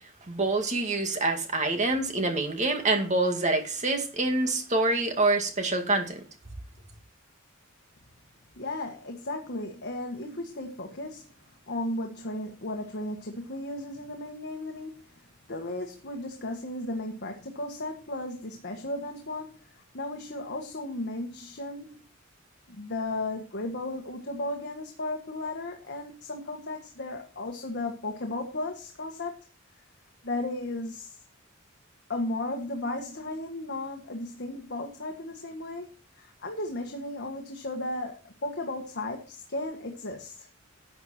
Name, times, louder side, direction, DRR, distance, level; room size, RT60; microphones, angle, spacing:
voice 1, 0.3-6.2, right 2 dB, 35° right, 5 dB, 2.1 m, -26 dB
voice 2, 8.6-11.3 11.7-15.1 15.5-22.0 22.7-29.4 30.2-31.2 32.1-40.5, left 2 dB, 55° left, 2 dB, 1.6 m, -35 dB
12.0 x 7.9 x 4.4 m, 0.35 s
head